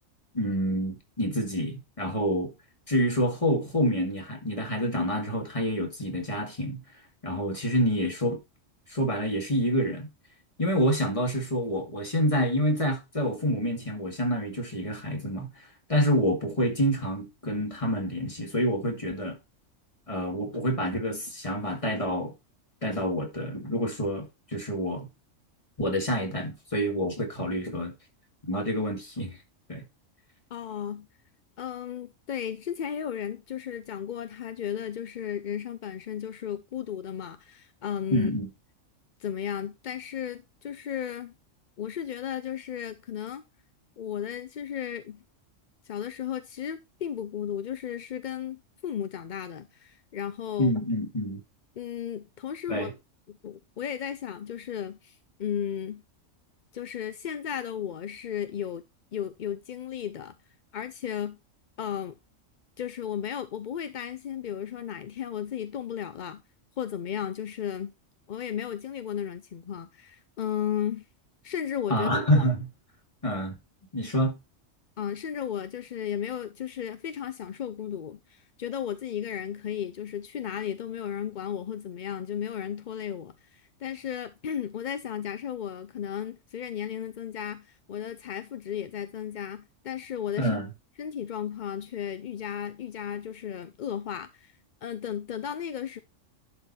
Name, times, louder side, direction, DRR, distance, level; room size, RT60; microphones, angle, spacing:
voice 1, 0.3-2.5 2.9-6.8 7.2-8.4 8.9-10.1 10.6-15.5 15.9-19.4 20.1-22.3 22.8-25.1 25.8-27.9 28.5-29.4 29.7-29.8 38.1-38.5 50.6-51.4 52.7-52.9 71.9-72.7 73.2-73.6 73.9-74.3 90.4-90.7, equal, 25° left, 2.2 m, -27 dB
voice 2, 30.5-31.1 31.6-38.3 39.2-41.3 41.8-43.4 44.0-45.2 45.8-50.7 51.8-52.9 53.3-56.0 56.7-58.8 59.1-60.3 60.7-61.4 61.8-62.1 62.8-66.4 66.8-67.9 68.3-71.0 71.4-72.1 75.0-90.6 91.0-94.5 94.8-96.0, left 9 dB, 55° left, 0.6 m, -34 dB
11.0 x 4.6 x 4.2 m
omnidirectional pair, 1.3 m